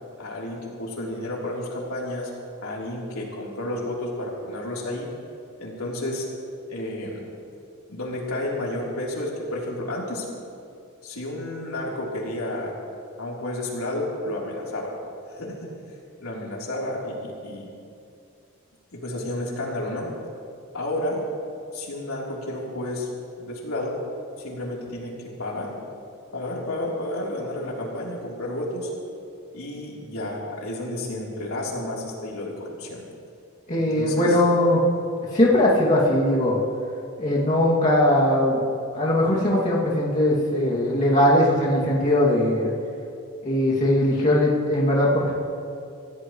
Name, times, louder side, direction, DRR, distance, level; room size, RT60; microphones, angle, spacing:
voice 1, 0.2-2.3 2.6-5.1 5.6-6.3 6.7-7.2 7.9-10.3 11.0-12.7 13.2-14.9 15.3-15.7 16.2-17.7 18.9-20.1 20.7-21.2 21.7-23.1 23.4-24.0 24.4-25.7 26.3-28.9 29.5-33.0 33.8-34.4, left 1 dB, 75° left, -4 dB, 3.6 m, -31 dB
voice 2, 33.7-34.8 35.3-36.6 37.2-38.6 38.9-42.7 43.4-45.4, left 1 dB, 35° left, -6 dB, 2.5 m, -20 dB
26.5 x 16.5 x 3.2 m, 2.5 s
head